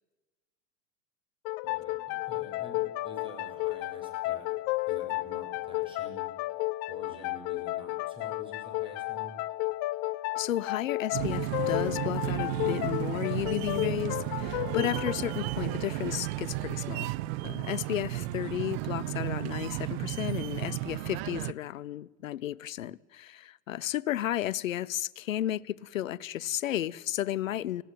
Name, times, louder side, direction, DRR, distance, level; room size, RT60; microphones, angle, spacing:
sound 1, 1.4-16.8, left 18 dB, 45° left, 0.8 m, -33 dB
voice 1, 1.6-4.5 4.9-6.3 6.9-9.4, equal, 15° right, 7.6 m, -49 dB
voice 2, 10.4-17.1 17.4-27.8, left 12 dB, 75° left, 0.7 m, -33 dB
sound 2, 11.1-21.5, right 18 dB, 50° right, 0.7 m, -33 dB
19.5 x 16.0 x 9.4 m
figure-of-eight pair, 85°, 40 cm